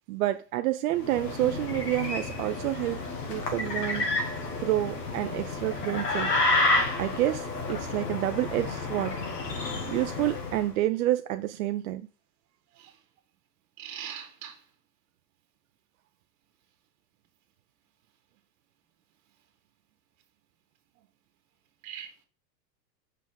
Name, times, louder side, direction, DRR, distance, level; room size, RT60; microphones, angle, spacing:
voice 1, 0.1-3.0 3.3-4.1 4.6-6.3 7.0-9.1 9.9-12.0, right 15 dB, 60° right, 0.5 m, -28 dB
sound 1, 0.9-10.7, left 2 dB, 75° left, 2.0 m, -30 dB
voice 2, 13.8-14.5 21.8-22.2, right 9 dB, 35° right, 1.7 m, -40 dB
6.0 x 5.5 x 3.6 m
hypercardioid pair, 100°, 49 cm